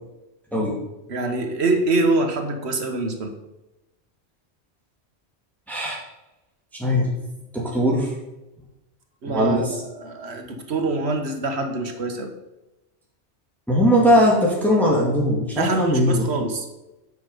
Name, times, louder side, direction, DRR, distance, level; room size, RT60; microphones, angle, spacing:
voice 1, 1.1-3.4 9.2-12.3 15.5-16.7, right 2 dB, 70° right, 6 dB, 1.5 m, -24 dB
voice 2, 5.7-6.0 6.7-7.1 7.5-8.1 9.3-9.6 13.7-16.2, equal, ahead, -4 dB, 1.9 m, -19 dB
9.8 x 6.3 x 5.3 m, 0.97 s
omnidirectional pair, 1.2 m